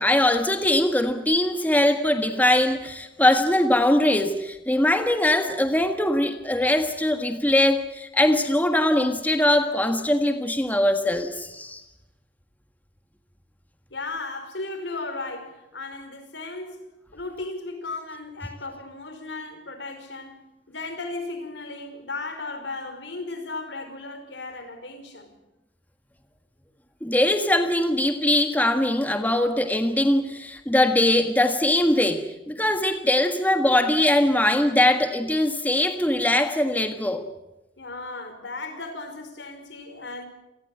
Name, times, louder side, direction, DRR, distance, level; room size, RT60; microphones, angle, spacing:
voice 1, 0.0-11.8 27.0-37.2, left 1 dB, 10° left, 7 dB, 1.6 m, -21 dB
voice 2, 13.9-16.8 17.1-25.3 37.8-40.3, left 3 dB, 75° left, 9 dB, 5.2 m, -35 dB
27.5 x 19.5 x 7.9 m, 0.97 s
head